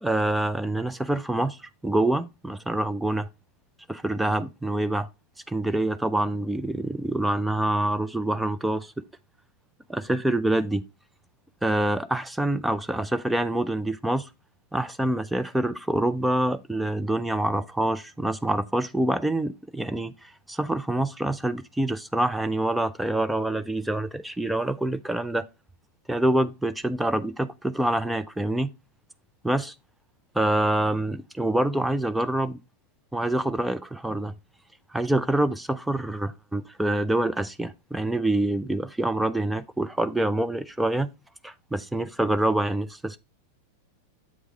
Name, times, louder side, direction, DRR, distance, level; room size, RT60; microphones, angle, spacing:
voice 1, 0.0-3.3 3.9-5.1 5.5-8.9 9.9-10.8 11.6-14.3 14.7-25.4 26.1-28.7 29.4-29.7 30.3-32.6 33.1-34.3 34.9-41.1 41.4-43.2, right 1 dB, 5° right, 0.4 m, -26 dB
7.3 x 4.7 x 3.3 m
figure-of-eight pair, 90°, 0 cm